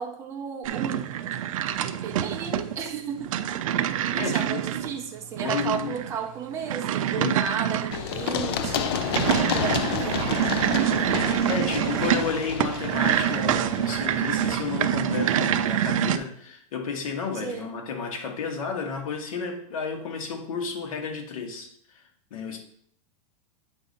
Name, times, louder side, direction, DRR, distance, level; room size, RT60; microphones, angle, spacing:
voice 1, 0.0-3.3 4.1-9.1 9.4-10.3 17.3-17.7, right 6 dB, 15° right, 3 dB, 0.6 m, -34 dB
sound 1, 0.6-16.2, right 10 dB, 70° right, 0.5 m, -26 dB
voice 2, 4.1-4.6 5.4-5.9 7.2-7.4 11.1-22.0 22.3-22.6, left 5 dB, 75° left, 4 dB, 1.5 m, -32 dB
Run, 7.9-15.6, left 8 dB, 45° left, 0.4 m, -31 dB
8.1 x 2.8 x 5.1 m, 0.64 s
supercardioid pair, 170°, 18 cm